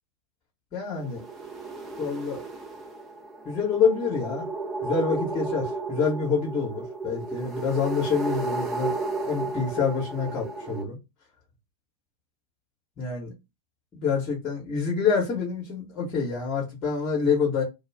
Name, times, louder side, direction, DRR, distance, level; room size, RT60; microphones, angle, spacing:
voice 1, 0.7-1.2 2.0-2.4 3.4-4.5 4.8-8.9 9.2-11.0 13.0-13.3 13.9-17.6, left 5 dB, 30° left, 1.0 m, -27 dB
sound 1, 0.9-10.8, right 3 dB, 15° right, 0.6 m, -33 dB
2.3 x 2.0 x 3.3 m
figure-of-eight pair, 90°, 0 cm